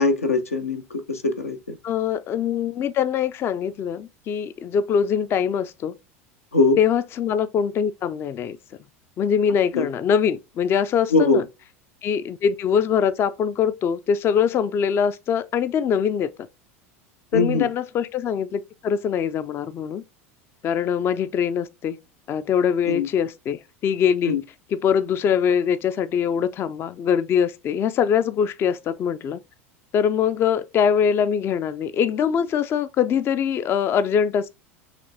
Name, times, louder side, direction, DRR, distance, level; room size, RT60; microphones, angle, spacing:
voice 1, 0.0-1.6 6.5-6.8 9.7-9.9 11.1-11.4 17.3-17.7 22.9-23.1 24.3-24.4, left 3 dB, 85° left, 0.7 m, -21 dB
voice 2, 1.8-5.9 6.8-8.6 9.2-11.4 12.0-16.3 17.3-20.0 20.6-22.0 22.3-24.4 24.7-29.4 29.9-34.5, left 7 dB, 30° left, 0.3 m, -23 dB
5.8 x 3.1 x 2.7 m
figure-of-eight pair, 75°, 8 cm